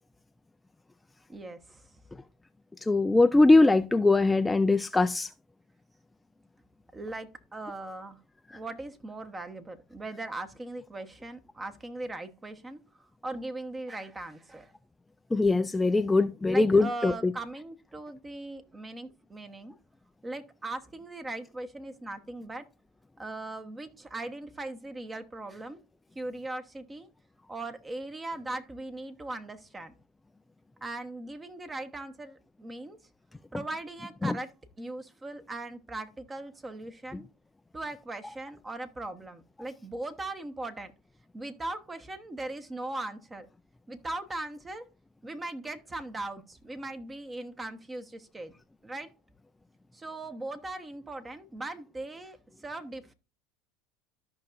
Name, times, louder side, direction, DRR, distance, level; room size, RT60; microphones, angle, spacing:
voice 1, 1.3-1.9 6.9-8.2 8.5-14.7 16.4-19.7 20.2-22.6 23.2-25.8 26.1-27.1 27.5-29.9 30.8-33.0 33.5-34.5 34.8-37.3 37.7-40.9 41.3-43.5 43.9-44.9 45.2-48.5 48.8-49.1 49.9-52.4 52.6-53.1, right 2 dB, 20° right, 1.1 m, -39 dB
voice 2, 2.8-5.3 15.3-17.3 34.2-34.4, left 2 dB, 10° left, 0.4 m, -22 dB
13.5 x 5.6 x 2.6 m
hypercardioid pair, 85°, 0 cm